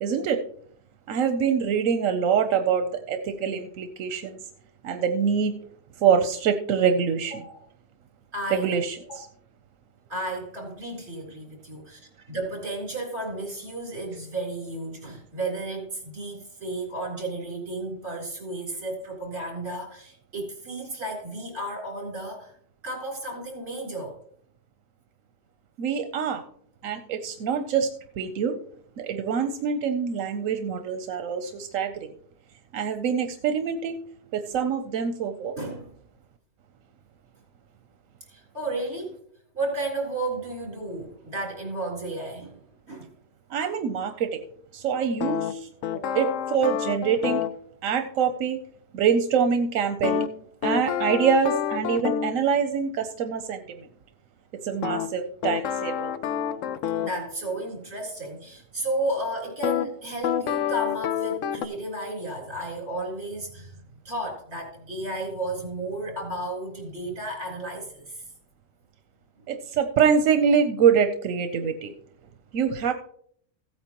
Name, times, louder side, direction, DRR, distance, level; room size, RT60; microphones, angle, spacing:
voice 1, 0.0-0.4 1.1-4.4 4.8-5.5 6.0-7.4 8.5-9.0 25.8-26.4 26.8-27.9 28.2-28.6 29.0-31.9 32.7-34.0 34.3-35.6 43.5-44.4 44.7-45.7 46.2-47.4 47.8-48.6 48.9-50.2 50.6-53.6 54.6-56.1 69.5-71.9 72.5-72.9, right 7 dB, 90° right, 7 dB, 1.1 m, -24 dB
voice 2, 7.3-7.6 8.3-8.8 9.1-9.2 10.1-22.5 22.8-24.2 35.6-35.9 38.3-39.2 39.5-42.6 42.9-43.1 45.9-46.3 57.0-68.2, right 2 dB, 55° right, -2 dB, 3.9 m, -33 dB
sound 1, 45.2-47.6 50.0-52.4 54.8-57.2 59.6-59.9 60.2-61.7, left 9 dB, 75° left, 1.0 m, -28 dB
15.5 x 8.9 x 2.9 m, 0.64 s
omnidirectional pair, 1.4 m